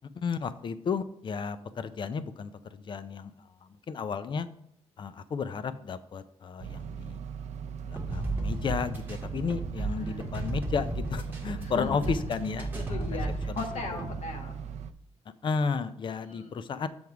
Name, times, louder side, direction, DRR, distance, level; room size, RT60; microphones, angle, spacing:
voice 1, 0.2-3.3 3.9-4.5 5.0-7.2 7.8-13.1 13.5-13.6 15.4-16.9, left 5 dB, 45° left, 13 dB, 0.5 m, -33 dB
sound 1, 6.6-14.9, right 7 dB, 80° right, 0.4 m, -39 dB
sound 2, 8.0-14.1, right 2 dB, 20° right, 1.3 m, -34 dB
voice 2, 9.8-10.4 11.6-12.1 12.7-14.6 16.3-16.5, left 3 dB, 85° left, 3 dB, 1.4 m, -38 dB
7.8 x 3.5 x 5.9 m, 0.73 s
wide cardioid pair, 160°, 12 cm